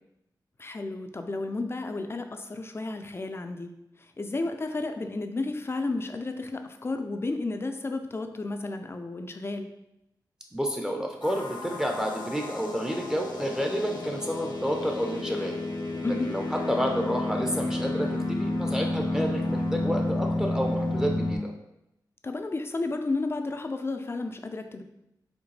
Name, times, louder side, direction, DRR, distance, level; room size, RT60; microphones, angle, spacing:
voice 1, 0.6-3.7 4.2-9.7 16.0-16.3 22.2-24.8, left 3 dB, 35° left, 6 dB, 0.4 m, -32 dB
voice 2, 10.5-15.6 16.1-21.5, equal, 10° right, 1 dB, 0.6 m, -30 dB
sound 1, 11.2-21.4, left 2 dB, 85° left, 0.9 m, -31 dB
5.1 x 3.2 x 3.2 m, 0.85 s
wide cardioid pair, 95°, 8 cm